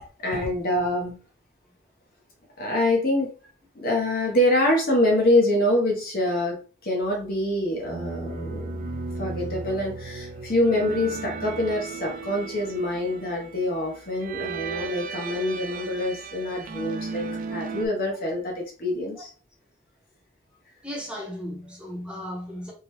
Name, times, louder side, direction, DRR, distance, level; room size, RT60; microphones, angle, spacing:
voice 1, 0.2-1.2 2.6-3.3 3.8-8.9 9.2-19.3, left 1 dB, 50° left, 1.0 m, -25 dB
sound 1, 7.8-17.9, right 4 dB, 45° right, 0.4 m, -35 dB
voice 2, 20.8-22.7, equal, 5° right, 0.8 m, -35 dB
3.7 x 2.2 x 3.1 m
head